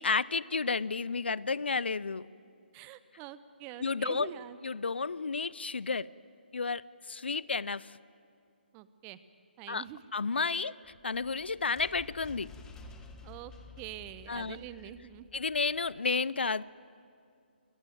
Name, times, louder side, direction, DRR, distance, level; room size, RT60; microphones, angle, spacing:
voice 1, 0.0-2.2 3.8-4.3 4.6-6.1 6.5-8.0 9.7-9.8 10.1-10.8 11.0-12.5 14.3-14.6 15.3-16.6, left 4 dB, 75° left, 21 dB, 0.5 m, -31 dB
voice 2, 2.7-4.6 8.7-9.2 9.6-10.0 10.6-10.7 13.2-15.3, right 12 dB, 20° right, 14 dB, 0.7 m, -45 dB
sound 1, 10.8-16.0, left 4 dB, 10° left, 1.4 m, -52 dB
21.5 x 20.0 x 9.1 m, 2.4 s
figure-of-eight pair, 145°, 6 cm